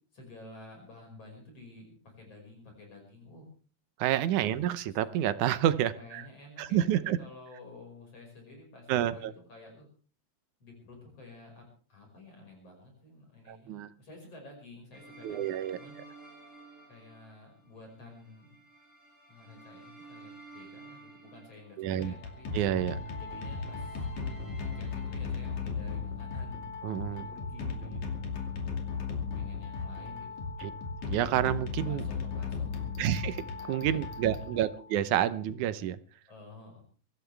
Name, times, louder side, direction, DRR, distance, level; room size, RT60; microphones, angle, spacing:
voice 1, 0.1-3.5 4.4-4.7 6.0-6.9 7.2-9.9 10.6-16.0 16.9-18.6 19.3-22.5 23.2-24.1 24.6-26.7 27.2-28.6 29.3-30.5 31.8-32.9 33.6-34.4 36.3-36.8, left 2 dB, 55° left, 1 dB, 6.5 m, -51 dB
voice 2, 4.0-6.2 6.6-7.2 8.9-9.3 13.5-13.9 15.2-15.8 21.8-22.1 22.5-23.0 26.8-27.3 30.6-30.7 31.0-32.1 33.0-36.0, right 11 dB, 85° right, 13 dB, 2.3 m, -29 dB
sound 1, 14.9-25.9, right 3 dB, 25° right, 7.8 m, -54 dB
sound 2, 21.9-35.1, left 4 dB, 80° left, 3.9 m, -36 dB
24.0 x 14.5 x 3.4 m, 0.40 s
omnidirectional pair, 3.4 m